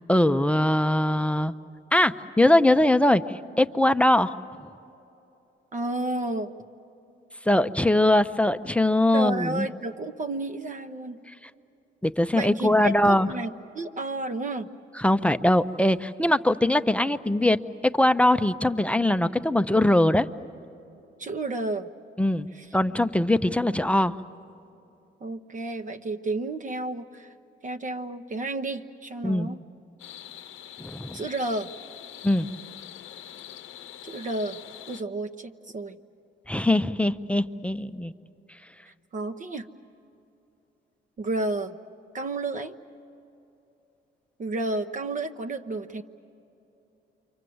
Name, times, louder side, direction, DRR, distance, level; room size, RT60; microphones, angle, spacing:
voice 1, 0.1-1.5 1.9-4.3 7.5-9.7 12.0-13.3 15.0-17.6 17.9-20.3 22.2-22.5 22.7-24.1 29.2-29.5 30.8-31.2 32.2-32.5 36.5-38.1, left 1 dB, 5° left, 10 dB, 0.6 m, -21 dB
voice 2, 5.7-6.5 9.1-11.2 12.3-14.7 21.2-21.9 22.5-22.7 25.2-27.3 27.6-29.6 31.1-31.7 34.0-34.6 34.9-36.0 38.9-39.6 41.2-41.8 42.1-42.7 44.4-46.0, right 2 dB, 40° right, 6 dB, 0.9 m, -31 dB
sound 1, 30.0-35.0, left 11 dB, 85° left, 0.7 m, -44 dB
28.5 x 25.0 x 7.8 m, 2.9 s
cardioid pair, 90°, 20 cm